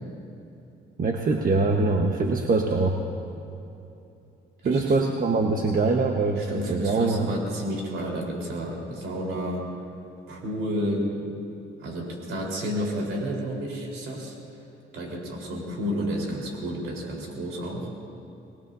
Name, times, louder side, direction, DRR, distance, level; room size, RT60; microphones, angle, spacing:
voice 1, 1.0-3.0 4.6-7.3, right 3 dB, 45° right, 2 dB, 1.2 m, -23 dB
voice 2, 6.4-9.7 10.3-11.3 11.8-14.4 14.9-17.9, equal, 85° right, -1 dB, 4.2 m, -31 dB
25.5 x 20.0 x 2.7 m, 2.8 s
cardioid pair, 90°, 20 cm